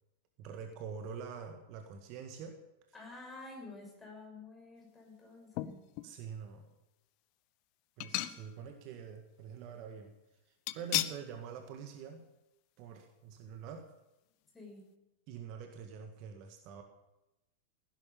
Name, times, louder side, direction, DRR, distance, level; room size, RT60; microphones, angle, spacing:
voice 1, 0.4-2.6 6.0-6.7 8.0-10.1 10.7-12.2 12.8-13.8 15.3-16.8, right 6 dB, 40° right, 5 dB, 1.7 m, -45 dB
voice 2, 2.9-5.8 14.5-14.8, left 2 dB, 10° left, 0 dB, 6.5 m, -50 dB
sound 1, 5.5-6.1 6.7-6.8 8.0-8.7 9.1-9.2 10.7-11.3 11.7-11.8 12.2-12.3, left 16 dB, 45° left, 0.8 m, -36 dB
16.5 x 10.5 x 7.2 m, 0.95 s
figure-of-eight pair, 90°, 0 cm